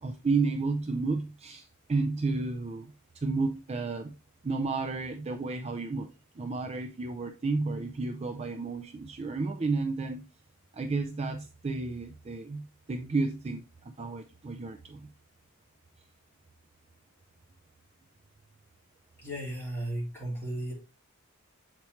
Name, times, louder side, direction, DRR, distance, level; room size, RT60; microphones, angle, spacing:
voice 1, 0.0-4.2 4.4-10.3 10.7-15.1, right 3 dB, 30° right, 0.4 m, -32 dB
voice 2, 19.2-20.7, right 1 dB, 10° left, 3.6 m, -35 dB
7.0 x 4.5 x 3.0 m
head